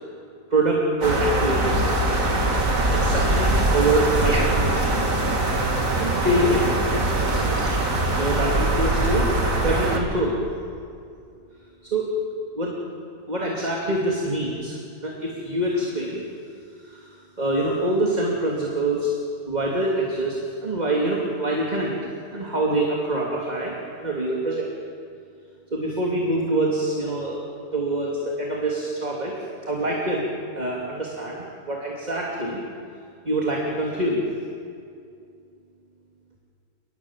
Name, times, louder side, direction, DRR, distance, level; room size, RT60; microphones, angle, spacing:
voice 1, 0.5-1.8 2.9-5.0 6.0-6.7 8.2-9.3 9.6-10.4 11.9-12.1 12.6-12.8 13.3-16.2 16.8-17.1 17.4-19.1 19.5-22.0 22.3-24.7 25.7-27.4 27.7-29.3 29.7-30.3 30.6-32.6 33.2-34.2, right 1 dB, 30° right, -3 dB, 3.1 m, -25 dB
sound 1, 1.0-10.0, right 1 dB, 75° right, 3.0 m, -22 dB
29.5 x 20.5 x 7.5 m, 2.4 s
omnidirectional pair, 1.5 m